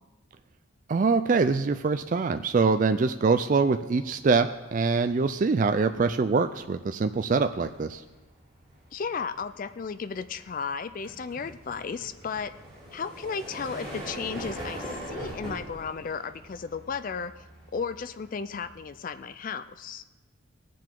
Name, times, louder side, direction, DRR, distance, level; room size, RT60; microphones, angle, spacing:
voice 1, 0.9-8.0, right 4 dB, 40° right, 8 dB, 0.3 m, -24 dB
sound 1, 2.0-2.1 2.4-19.1, equal, ahead, 4.9 m, -44 dB
voice 2, 8.9-12.5 12.9-17.4 17.7-20.0, left 5 dB, 40° left, 12 dB, 0.3 m, -34 dB
19.5 x 7.5 x 3.8 m, 1.2 s
head